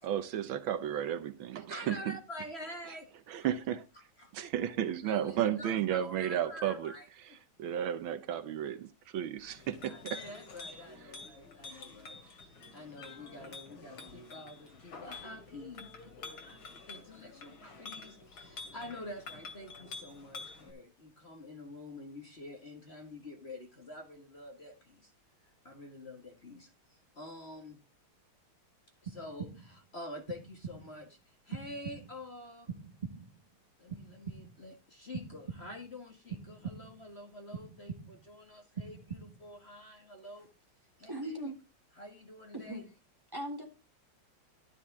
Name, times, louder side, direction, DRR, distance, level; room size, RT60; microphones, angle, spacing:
voice 1, 0.0-2.2 3.3-3.8 4.3-6.9 7.2-10.2, right 10 dB, 75° right, 1.6 m, -33 dB
voice 2, 1.5-3.1 3.4-3.5 4.2-4.3 5.0-7.4 9.9-25.1 25.4-27.8 29.0-32.7 33.8-40.5 41.0-41.3 41.9-42.9, left 1 dB, 30° left, 1.9 m, -48 dB
Chink clink, 9.4-20.7, left 4 dB, 75° left, 3.0 m, -48 dB
sound 1, 29.1-29.8 30.3-31.0 31.5-32.3 32.7-33.5 33.9-34.7 35.1-35.9 36.3-37.1 37.5-38.3 38.7-39.6, right 6 dB, 30° right, 0.8 m, -44 dB
voice 3, 41.1-41.6 42.5-42.8 43.3-43.6, right 1 dB, 10° right, 3.4 m, -38 dB
12.5 x 10.0 x 3.5 m
omnidirectional pair, 2.3 m